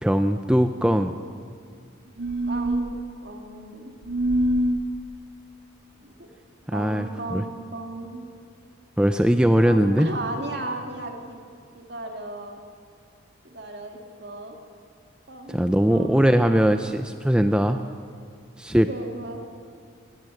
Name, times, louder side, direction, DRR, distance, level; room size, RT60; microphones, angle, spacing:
voice 1, 0.0-1.1 6.7-7.4 9.0-10.1 15.5-17.8 18.6-18.9, equal, 5° right, 8 dB, 0.5 m, -20 dB
sound 1, 2.2-2.9 4.0-4.8, right 1 dB, 90° right, 1.6 m, -24 dB
voice 2, 2.5-3.9 6.0-6.3 6.7-8.3 9.6-11.4 11.7-12.6 13.4-14.6 15.3-16.8 18.7-19.4, right 2 dB, 55° right, 3 dB, 2.5 m, -36 dB
19.0 x 17.5 x 7.8 m, 2.2 s
head